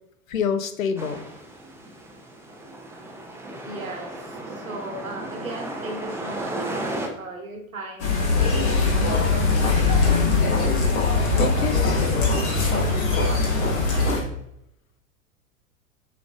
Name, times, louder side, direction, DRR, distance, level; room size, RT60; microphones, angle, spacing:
voice 1, 0.3-1.3 11.4-11.9, left 6 dB, 75° left, 10 dB, 0.6 m, -26 dB
sound 1, 1.0-7.1, right 1 dB, 5° right, 0.6 m, -34 dB
voice 2, 3.6-8.2 11.3-12.2 12.6-14.2, right 1 dB, 80° right, 2 dB, 1.1 m, -37 dB
sound 2, 8.0-14.2, left 3 dB, 55° left, 1.5 m, -21 dB
6.8 x 3.4 x 2.3 m, 0.79 s
figure-of-eight pair, 85°, 40 cm